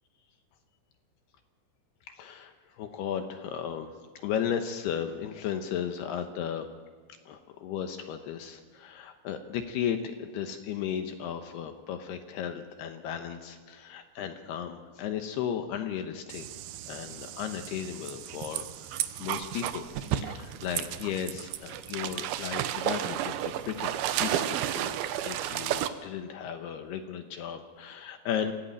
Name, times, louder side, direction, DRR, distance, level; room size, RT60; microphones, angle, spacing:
voice 1, 2.1-3.9 4.2-6.7 7.3-16.5 16.9-18.6 19.2-19.9 20.2-23.4 23.6-23.9 24.2-28.5, left 8 dB, 75° left, 7 dB, 2.6 m, -35 dB
sound 1, 16.3-25.9, right 11 dB, 85° right, 2.1 m, -33 dB
24.5 x 16.0 x 9.0 m, 1.5 s
omnidirectional pair, 5.6 m